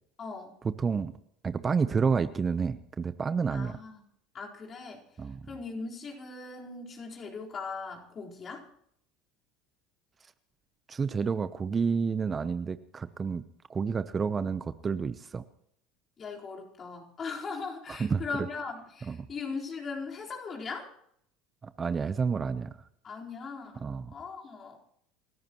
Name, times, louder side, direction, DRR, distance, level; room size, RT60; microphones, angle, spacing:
voice 1, 0.2-0.5 3.5-4.0 4.3-5.0 5.5-8.6 16.2-20.9 23.0-24.8, left 4 dB, 40° left, -1 dB, 4.3 m, -39 dB
voice 2, 0.8-1.1 1.4-3.8 5.2-5.4 10.9-13.4 13.7-15.4 18.0-18.2 19.1-19.2 21.6-22.8 23.8-24.1, right 5 dB, 30° right, 13 dB, 0.8 m, -29 dB
29.0 x 14.0 x 3.1 m, 0.69 s
hypercardioid pair, 75°, 0 cm